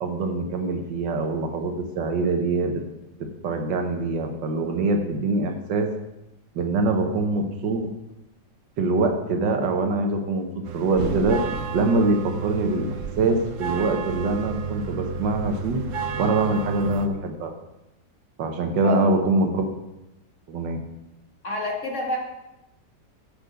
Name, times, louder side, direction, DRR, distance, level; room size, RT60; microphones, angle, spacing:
voice 1, 0.0-2.8 3.4-5.9 6.6-7.9 8.8-10.4 10.7-11.4 11.7-15.8 16.2-17.5 18.4-19.7 20.5-20.8, right 3 dB, 80° right, 4 dB, 1.8 m, -24 dB
sound 1, 10.6-17.1, right 5 dB, 60° right, 0.9 m, -31 dB
voice 2, 21.4-22.2, left 1 dB, 45° left, 0 dB, 1.9 m, -27 dB
8.4 x 8.0 x 5.2 m, 0.93 s
omnidirectional pair, 1.9 m